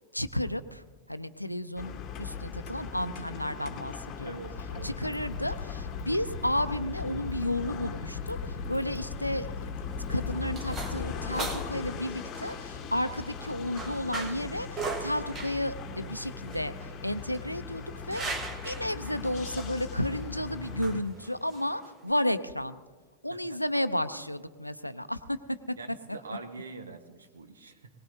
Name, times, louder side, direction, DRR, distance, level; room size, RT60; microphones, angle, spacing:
voice 1, 0.1-4.4 4.8-9.5 10.1-22.8 23.2-25.8, left 1 dB, 90° left, 12 dB, 0.5 m, -32 dB
sound 1, 1.8-21.0, left 5 dB, 30° left, 1.2 m, -40 dB
voice 2, 4.2-5.0 23.3-23.6 25.8-27.9, right 3 dB, 70° right, 7 dB, 1.2 m, -44 dB
sound 2, 4.6-11.9, left 5 dB, 60° left, 1.0 m, -39 dB
sound 3, 9.8-22.1, right 3 dB, 25° right, 1.5 m, -41 dB
21.5 x 19.0 x 2.7 m, 1.4 s
figure-of-eight pair, 90°, 0 cm